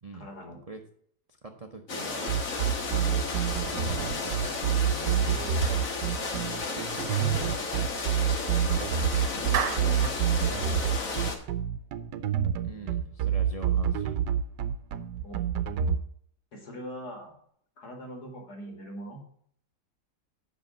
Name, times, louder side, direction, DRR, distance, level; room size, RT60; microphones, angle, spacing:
voice 1, 0.1-0.6 7.0-7.5 9.3-10.7 15.2-15.4 16.5-17.3 17.8-19.2, equal, 70° left, 1 dB, 2.9 m, -41 dB
voice 2, 1.3-2.3 2.9-3.3 3.6-5.1 12.6-14.2, right 3 dB, 40° right, 4 dB, 0.5 m, -43 dB
sound 1, 1.9-11.4, left 3 dB, 55° left, 1.7 m, -33 dB
sound 2, 2.3-16.0, right 9 dB, 90° right, 1.3 m, -27 dB
Clapping, 9.5-10.2, right 8 dB, 60° right, 1.2 m, -30 dB
8.2 x 6.3 x 5.2 m, 0.64 s
omnidirectional pair, 1.8 m